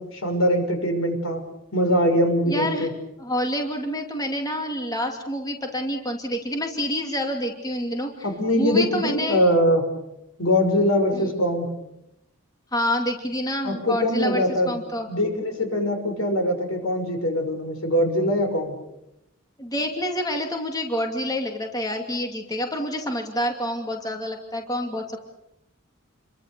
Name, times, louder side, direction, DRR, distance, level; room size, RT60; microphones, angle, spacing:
voice 1, 0.0-1.4 1.7-2.9 8.2-9.9 10.4-11.7 13.6-14.7 15.1-18.8, equal, 80° left, 5 dB, 6.1 m, -22 dB
voice 2, 2.5-2.9 3.2-8.3 8.6-9.4 11.1-11.3 12.7-15.1 19.6-25.2, equal, 20° left, 3 dB, 2.6 m, -28 dB
29.0 x 23.0 x 6.9 m, 0.86 s
head